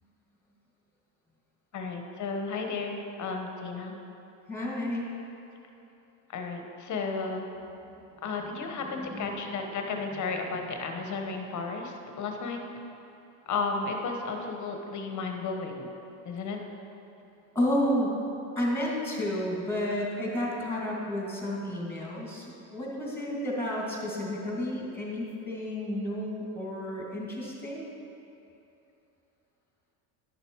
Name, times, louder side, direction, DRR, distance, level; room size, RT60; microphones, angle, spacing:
voice 1, 1.7-4.0 6.3-7.5 8.2-12.6 13.5-15.9 16.2-16.6, left 4 dB, 40° left, 3 dB, 1.2 m, -33 dB
voice 2, 4.5-5.1 7.8-7.9 9.0-9.4 9.9-10.2 10.5-10.6 17.5-18.2 18.6-22.5 22.7-27.9, left 1 dB, 5° left, -4 dB, 2.3 m, -31 dB
11.0 x 6.8 x 4.7 m, 2.9 s
cardioid pair, 120°, 46 cm